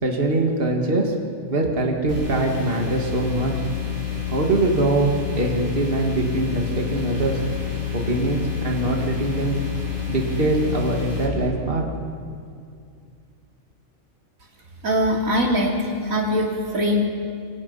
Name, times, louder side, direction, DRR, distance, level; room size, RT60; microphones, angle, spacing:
voice 1, 0.0-1.1 1.5-3.5 4.3-7.4 7.9-9.6 10.1-11.8, right 2 dB, 45° right, 1 dB, 2.3 m, -23 dB
sound 1, 2.1-11.3, left 8 dB, 70° right, 8.6 m, -29 dB
voice 2, 14.8-15.8 16.0-17.0, equal, 90° right, 0 dB, 3.3 m, -21 dB
26.5 x 24.5 x 5.5 m, 2.3 s
omnidirectional pair, 1.4 m